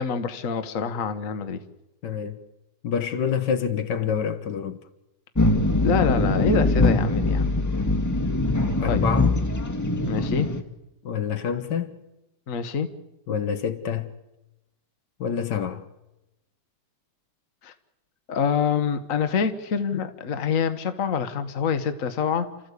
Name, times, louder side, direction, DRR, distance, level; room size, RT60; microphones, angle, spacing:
voice 1, 0.0-1.6 5.8-7.5 8.9-9.0 10.0-10.5 12.5-12.9 17.6-17.7 18.3-22.5, left 6 dB, 50° left, 1.6 m, -26 dB
voice 2, 2.0-2.4 2.8-4.8 8.8-9.3 11.0-12.0 13.3-14.1 15.2-15.9, left 7 dB, 75° left, 1.8 m, -27 dB
sound 1, 5.4-10.6, left 2 dB, 10° left, 1.5 m, -22 dB
29.0 x 14.0 x 8.3 m
omnidirectional pair, 1.9 m